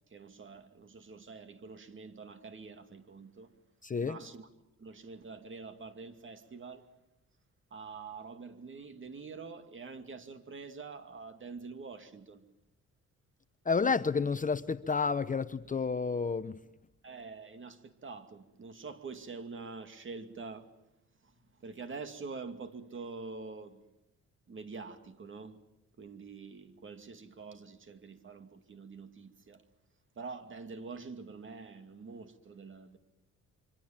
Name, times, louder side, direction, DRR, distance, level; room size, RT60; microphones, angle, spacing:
voice 1, 0.1-3.6 4.0-4.5 4.8-6.9 7.7-12.4 17.0-20.7 21.2-23.9 24.5-25.6 26.0-29.6 30.1-33.0, right 4 dB, 40° right, 2.5 m, -46 dB
voice 2, 3.8-4.2 13.7-16.5, left 5 dB, 25° left, 0.8 m, -30 dB
26.0 x 24.5 x 7.4 m
cardioid pair, 90°, 30 cm